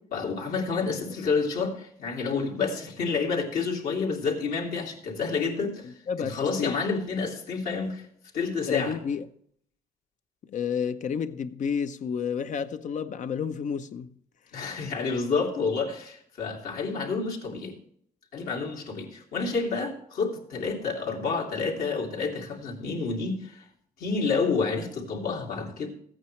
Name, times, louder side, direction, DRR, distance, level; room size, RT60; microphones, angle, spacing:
voice 1, 0.1-5.9 6.2-8.0 8.3-9.0 14.5-17.7 18.3-23.6 24.0-25.9, left 4 dB, 75° left, 2.6 m, -29 dB
voice 2, 6.1-6.8 8.7-9.2 10.5-14.1, left 6 dB, 55° left, 0.7 m, -30 dB
14.5 x 8.9 x 3.2 m
cardioid pair, 85°, 15 cm